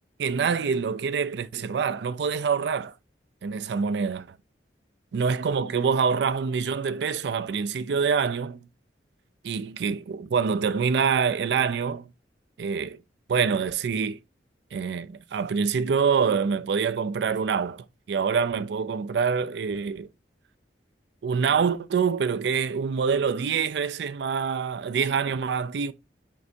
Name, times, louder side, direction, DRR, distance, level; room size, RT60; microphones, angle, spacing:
voice 1, 0.2-2.9 3.4-4.4 5.1-8.6 9.4-12.1 12.6-13.0 13.3-14.2 14.7-20.1 21.2-25.9, right 6 dB, 70° right, 0.4 m, -26 dB
5.2 x 3.3 x 2.6 m
head